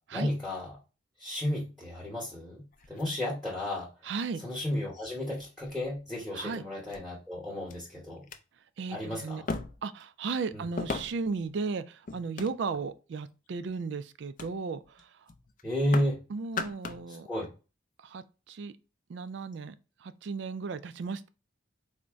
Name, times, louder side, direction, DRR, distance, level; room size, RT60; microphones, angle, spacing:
voice 1, 0.1-0.8 1.2-3.9 4.4-8.3 8.9-9.5 10.5-10.6 15.6-16.2 17.1-17.5, left 1 dB, ahead, 0.9 m, -33 dB
sound 1, 2.7-3.8 4.6-4.7 5.4-6.0 6.9-7.0 7.7-7.8 8.2-8.4 9.5-10.0 10.8-11.4 12.1-12.9 13.5-13.8 14.4-14.6 14.8-15.0 15.3-16.2 16.4-17.1 17.4-17.5, left 4 dB, 40° left, 0.4 m, -38 dB
voice 2, 4.0-4.4 6.3-6.6 8.8-9.4 9.8-15.1 16.3-17.3 18.0-18.7 19.1-19.8 20.0-21.3, right 4 dB, 60° right, 0.3 m, -35 dB
3.9 x 2.1 x 3.4 m
head